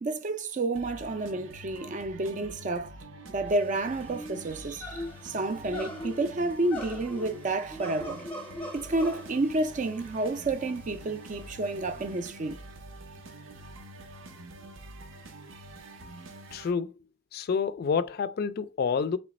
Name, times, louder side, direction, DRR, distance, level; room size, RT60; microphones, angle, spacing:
voice 1, 0.0-2.9 3.3-8.2 8.7-12.6, right 2 dB, 40° right, 0.4 m, -30 dB
sound 1, 0.7-16.7, right 1 dB, 85° right, 0.7 m, -46 dB
sound 2, 3.5-12.2, left 1 dB, 10° left, 0.7 m, -42 dB
voice 2, 16.5-16.9 17.3-19.2, left 6 dB, 50° left, 0.3 m, -28 dB
3.2 x 3.0 x 4.1 m
head